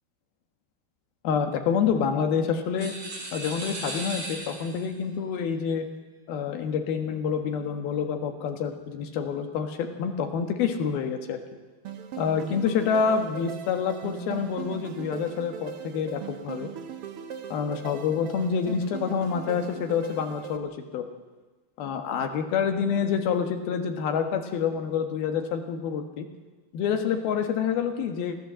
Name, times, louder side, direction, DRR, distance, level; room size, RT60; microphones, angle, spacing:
voice 1, 1.2-2.9 3.3-5.9 6.3-11.4 12.1-16.7 17.5-21.1 21.8-26.3 26.7-28.5, left 6 dB, 80° left, 5 dB, 3.5 m, -27 dB
sound 1, 2.8-4.9, right 2 dB, 90° right, 8.0 m, -37 dB
sound 2, 11.8-20.6, right 9 dB, 70° right, 1.4 m, -39 dB
24.0 x 15.5 x 7.6 m, 1.2 s
omnidirectional pair, 4.3 m